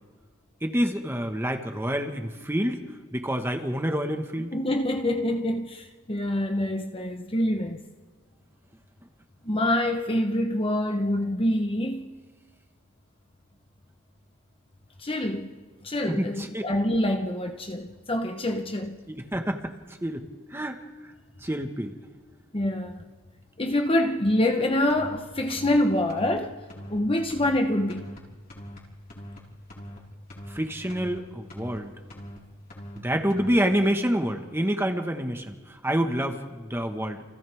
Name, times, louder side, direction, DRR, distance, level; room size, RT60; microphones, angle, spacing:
voice 1, 0.6-2.9 3.1-4.5 16.1-16.6 19.1-19.7 20.0-20.2 20.5-20.8 21.4-22.0 30.5-31.9 33.0-35.5 35.8-37.2, equal, 10° right, 1.6 m, -27 dB
voice 2, 4.5-7.8 9.4-12.1 15.0-15.5 15.8-19.0 22.5-23.0 23.6-26.6 26.9-28.1, left 1 dB, 25° left, 1.1 m, -26 dB
sound 1, 24.9-25.2 25.5-25.8 26.1-26.4 26.7-27.0 27.3-27.6 27.9-28.2 28.5-28.8 29.1-29.4 29.7-30.0 30.3-30.6 30.9-31.2 31.5-31.8 32.1-32.4 32.7-33.0 33.3-33.6, equal, 45° left, 4.8 m, -41 dB
29.5 x 28.5 x 3.7 m
head